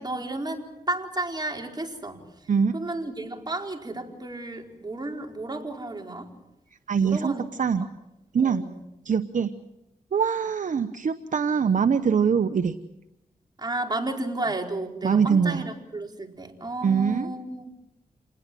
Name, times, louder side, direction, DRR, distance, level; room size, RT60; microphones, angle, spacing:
voice 1, 0.0-2.2 2.7-6.3 7.0-7.5 8.4-8.8 13.6-17.7, right 2 dB, 30° right, 2 dB, 4.5 m, -32 dB
voice 2, 6.9-7.3 7.6-7.9 8.3-8.6 9.0-9.5 10.1-12.8 15.0-15.7 16.8-17.3, right 6 dB, 60° right, 9 dB, 1.0 m, -23 dB
28.0 x 20.0 x 7.6 m, 0.88 s
cardioid pair, 65°, 15 cm